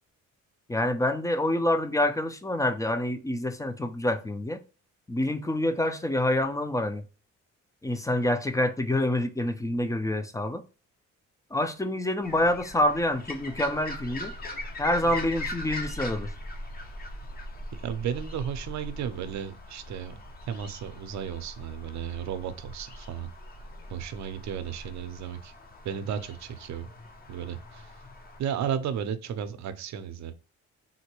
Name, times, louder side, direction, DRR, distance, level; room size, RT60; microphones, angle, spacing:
voice 1, 0.7-4.6 5.1-7.0 7.8-10.6 11.5-14.3 14.8-16.3, left 1 dB, 10° left, 0.5 m, -27 dB
sound 1, 12.2-28.4, left 1 dB, 30° left, 0.8 m, -41 dB
voice 2, 17.7-20.1 20.5-23.3 23.9-25.5 25.8-26.9 27.3-28.0 28.4-30.3, right 8 dB, 65° right, 0.6 m, -34 dB
3.8 x 2.1 x 2.9 m
cardioid pair, 90°, 30 cm